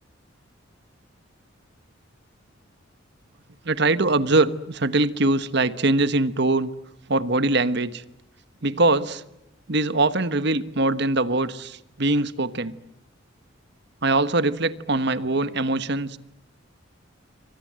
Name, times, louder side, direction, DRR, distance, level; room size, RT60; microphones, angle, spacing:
voice 1, 3.6-6.7 7.1-8.0 8.6-9.2 9.7-12.7 14.0-16.2, right 2 dB, 55° right, 14 dB, 1.3 m, -22 dB
28.0 x 25.0 x 7.6 m, 0.84 s
head